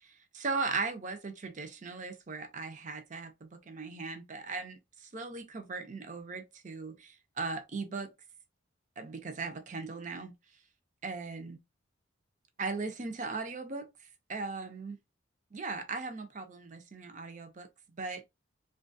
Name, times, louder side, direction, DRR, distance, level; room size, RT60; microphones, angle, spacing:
voice 1, 0.1-8.1 9.0-10.3 11.0-11.6 12.6-13.9 14.3-15.0 15.5-17.7 18.0-18.2, right 4 dB, 35° right, 0.5 m, -38 dB
2.9 x 2.3 x 2.6 m
head